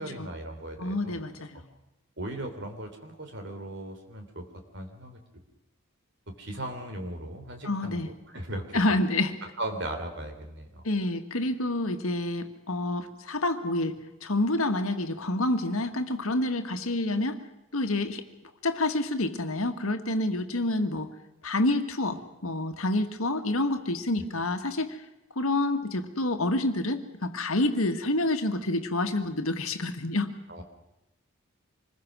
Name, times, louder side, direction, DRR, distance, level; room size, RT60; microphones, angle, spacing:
voice 1, 0.0-1.2 2.2-4.5 4.7-5.4 6.3-9.0 9.4-10.8 30.5-30.6, right 1 dB, 55° right, 6 dB, 3.5 m, -38 dB
voice 2, 0.8-1.7 7.6-8.1 8.7-9.3 10.8-14.0 14.2-17.4 17.7-18.2 18.6-21.1 21.4-25.0 25.4-30.3, left 2 dB, 75° left, 7 dB, 1.8 m, -28 dB
26.0 x 21.0 x 6.3 m, 0.98 s
head